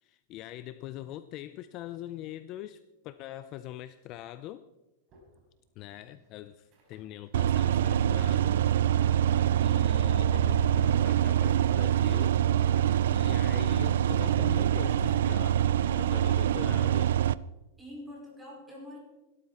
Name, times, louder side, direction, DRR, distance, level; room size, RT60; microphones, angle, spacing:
voice 1, 0.0-4.6 5.8-8.6 9.6-12.8 13.1-15.7 16.0-17.1, left 13 dB, 35° left, 13 dB, 0.5 m, -43 dB
sound 1, 5.1-13.5, right 4 dB, 30° right, 4.4 m, -57 dB
sound 2, 7.3-17.3, right 10 dB, 75° right, 0.4 m, -25 dB
voice 2, 15.8-16.3 17.8-19.0, left 1 dB, 5° right, -2 dB, 5.0 m, -47 dB
17.0 x 12.5 x 4.3 m, 1.0 s
supercardioid pair, 155°, 0 cm